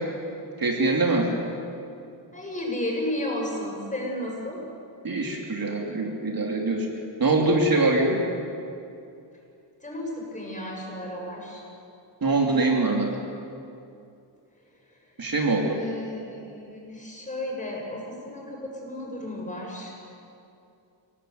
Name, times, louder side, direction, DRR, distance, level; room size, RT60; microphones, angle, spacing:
voice 1, 0.6-1.3 5.0-6.9 7.2-8.2 12.2-13.1 15.2-15.8, right 2 dB, 45° right, 0 dB, 3.1 m, -23 dB
voice 2, 2.3-4.6 9.8-11.6 14.7-15.1 15.7-19.9, left 1 dB, 15° left, -2 dB, 7.5 m, -33 dB
28.5 x 18.0 x 9.5 m, 2.6 s
wide cardioid pair, 150°, 47 cm